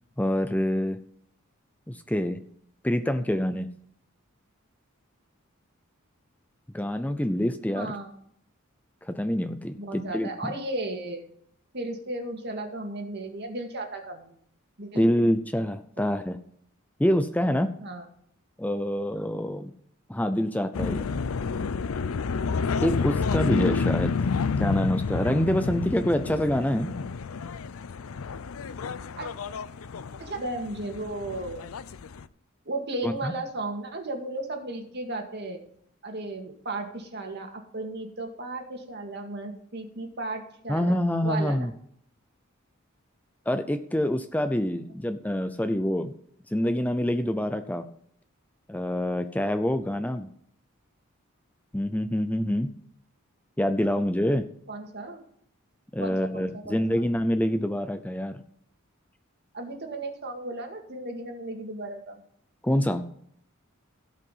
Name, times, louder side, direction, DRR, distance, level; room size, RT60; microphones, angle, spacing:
voice 1, 0.2-1.0 1.9-2.4 2.8-3.7 6.7-7.9 9.1-10.5 15.0-16.4 17.0-17.7 18.6-19.7 20.1-21.1 22.8-24.2 24.6-26.9 33.0-33.3 40.7-41.7 43.5-46.1 46.5-47.9 48.7-50.3 51.7-52.7 53.6-54.4 55.9-58.4 62.6-63.0, equal, 10° left, 10 dB, 0.5 m, -26 dB
voice 2, 7.7-8.1 9.8-11.2 11.7-14.4 14.8-15.0 17.8-18.0 29.2-29.3 30.2-31.7 32.7-35.6 36.0-41.7 54.7-55.2 56.0-57.0 59.5-62.2, right 2 dB, 55° right, 3 dB, 2.0 m, -35 dB
sound 1, 20.7-32.2, left 5 dB, 85° left, 0.5 m, -29 dB
16.5 x 5.6 x 5.5 m, 0.66 s
head